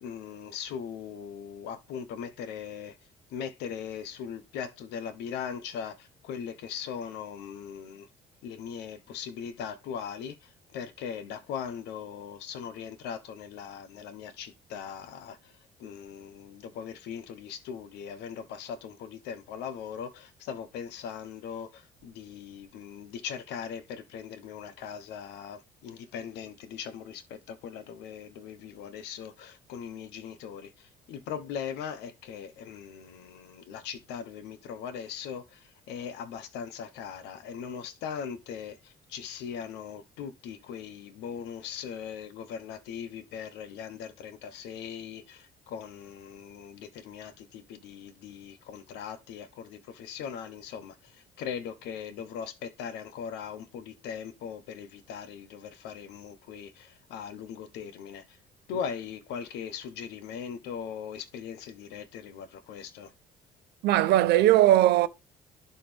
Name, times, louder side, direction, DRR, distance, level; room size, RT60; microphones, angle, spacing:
voice 1, 0.0-2.9 3.3-8.1 8.4-10.4 10.7-15.4 15.8-30.7 31.1-35.6 35.9-50.9 51.4-58.2 58.7-63.1, left 7 dB, 85° left, 1.1 m, -39 dB
voice 2, 63.8-65.1, right 14 dB, 80° right, 0.8 m, -19 dB
11.5 x 4.2 x 3.4 m
cardioid pair, 110°, 17 cm